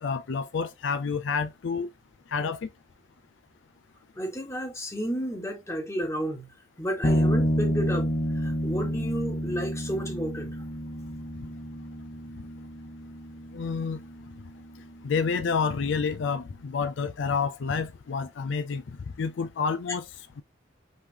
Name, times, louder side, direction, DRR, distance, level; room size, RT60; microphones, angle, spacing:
voice 1, 0.0-1.9 2.3-2.7 13.5-14.0 15.0-18.8 19.2-20.1, left 5 dB, 70° left, 0.4 m, -29 dB
voice 2, 4.2-6.5 6.8-8.1 8.3-10.5, equal, 15° left, 1.4 m, -32 dB
sound 1, 7.0-16.5, equal, 40° left, 0.9 m, -30 dB
5.4 x 3.3 x 2.8 m
head